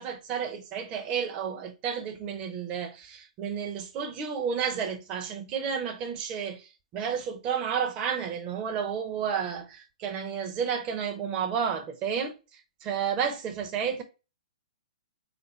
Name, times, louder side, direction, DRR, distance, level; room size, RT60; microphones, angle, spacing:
voice 1, 0.0-12.4 12.8-14.0, right 7 dB, 30° right, 0.8 m, -31 dB
3.8 x 2.6 x 4.0 m
hypercardioid pair, 120°, 4 cm